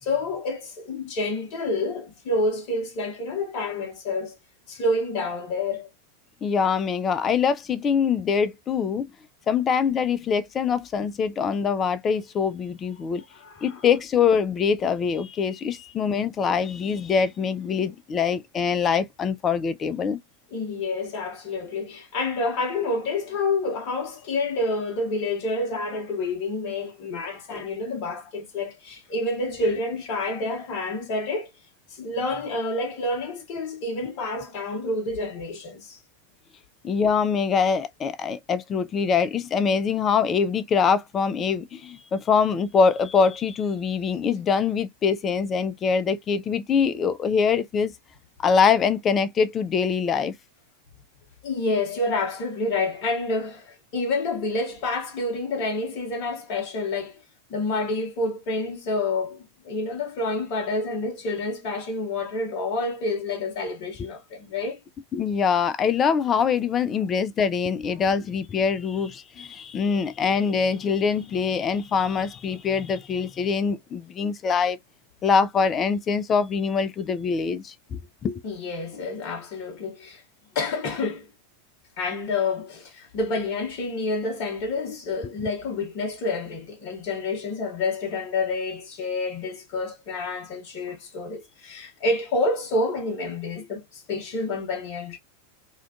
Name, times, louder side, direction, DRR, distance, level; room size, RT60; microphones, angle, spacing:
voice 1, 0.0-4.3 4.7-5.9 13.3-13.7 20.5-31.5 31.9-36.0 51.4-57.2 57.5-64.8 78.4-80.2 80.5-81.3 82.0-95.2, left 2 dB, 45° left, 0.8 m, -28 dB
voice 2, 6.4-9.1 9.5-13.2 13.6-20.2 36.8-47.9 48.4-50.3 65.1-74.8 75.2-78.4, left 6 dB, 25° left, 0.3 m, -24 dB
2.4 x 2.2 x 2.3 m
figure-of-eight pair, 90°, 0 cm